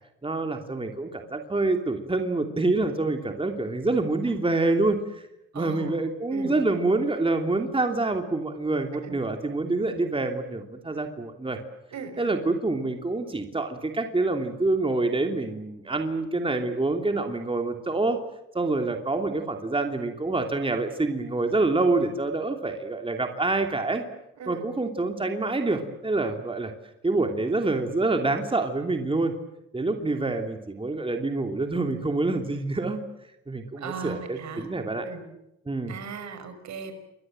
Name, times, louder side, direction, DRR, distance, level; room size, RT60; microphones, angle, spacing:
voice 1, 0.2-5.0 5.5-11.6 12.2-18.2 18.5-24.0 24.5-26.7 27.0-29.3 29.7-33.0 33.5-35.1 35.7-35.9, right 2 dB, 20° right, 4 dB, 2.9 m, -26 dB
voice 2, 5.5-6.0 6.3-6.5 9.0-9.2 11.9-12.3 24.4-24.6 33.8-34.7 35.0-35.2 35.9-36.9, right 5 dB, 65° right, 9 dB, 5.9 m, -37 dB
29.0 x 22.0 x 7.8 m, 0.83 s
cardioid pair, 90°, 30 cm